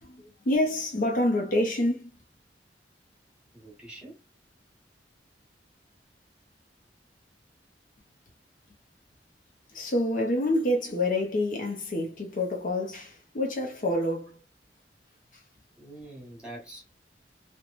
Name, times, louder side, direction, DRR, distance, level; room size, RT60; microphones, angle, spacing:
voice 1, 0.0-2.1 9.7-14.4 15.3-15.4, left 1 dB, 50° left, 0.5 m, -27 dB
voice 2, 3.5-4.2 15.8-16.9, right 1 dB, 5° right, 1.2 m, -45 dB
3.0 x 2.1 x 2.4 m
head